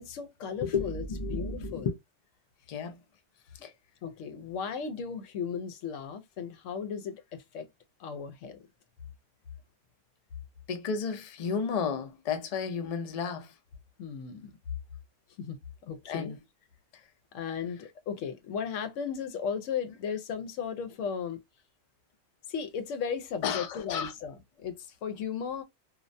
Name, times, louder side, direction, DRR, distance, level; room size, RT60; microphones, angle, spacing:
voice 1, 0.0-1.9 4.0-7.7 8.0-8.6 14.0-14.6 15.4-15.6 15.9-16.4 17.3-21.4 22.5-25.6, left 6 dB, 85° left, 0.9 m, -36 dB
voice 2, 0.6-1.9 2.7-2.9 10.7-13.5 16.1-16.3 23.4-24.1, left 5 dB, 60° left, 0.4 m, -32 dB
2.4 x 2.1 x 2.5 m
omnidirectional pair, 1.3 m